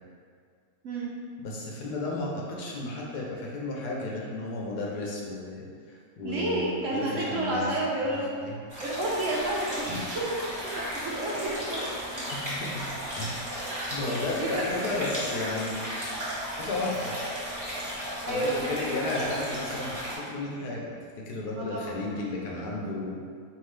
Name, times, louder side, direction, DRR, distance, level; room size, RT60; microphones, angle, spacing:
voice 1, 1.4-7.7 8.0-8.5 12.3-12.8 13.1-13.4 13.9-15.8 16.5-17.1 18.2-20.0 20.2-21.0 21.3-23.2, left 2 dB, 80° left, -2 dB, 1.3 m, -33 dB
voice 2, 6.2-8.3 8.8-11.8 12.1-12.5 13.7-14.0 14.3-14.9 18.2-18.9 21.6-22.0, right 1 dB, 60° right, -4 dB, 0.9 m, -31 dB
sound 1, 8.7-20.2, equal, 15° right, 1.1 m, -35 dB
4.6 x 3.1 x 3.2 m, 2.1 s
omnidirectional pair, 1.7 m